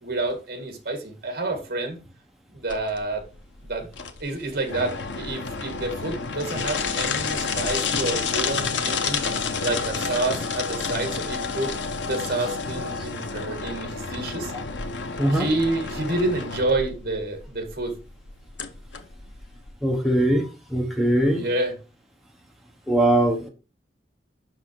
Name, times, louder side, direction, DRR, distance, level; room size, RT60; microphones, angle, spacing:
voice 1, 0.0-2.0 2.5-3.2 3.7-3.9 4.2-9.2 9.6-11.7 12.1-14.5 15.3-18.0 21.3-21.7, right 2 dB, 50° right, 5 dB, 1.8 m, -28 dB
sound 1, 2.7-19.7, left 5 dB, 85° left, 0.8 m, -30 dB
voice 2, 19.8-21.4 22.9-23.5, right 1 dB, ahead, 1 dB, 0.9 m, -21 dB
6.1 x 5.8 x 4.6 m, 0.32 s
head